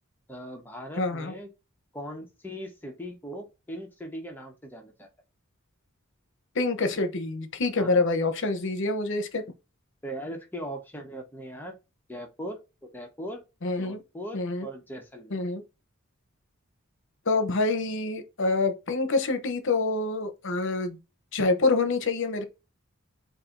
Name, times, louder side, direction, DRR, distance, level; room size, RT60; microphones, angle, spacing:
voice 1, 0.3-1.5 1.9-5.1 7.7-8.0 10.0-11.7 12.1-13.4 13.8-15.4, equal, 10° left, 1.0 m, -39 dB
voice 2, 1.0-1.3 6.5-9.4 13.6-14.0 14.3-14.7 15.3-15.6 17.3-21.0 21.3-22.4, left 3 dB, 60° left, 0.8 m, -26 dB
7.5 x 2.7 x 2.6 m
head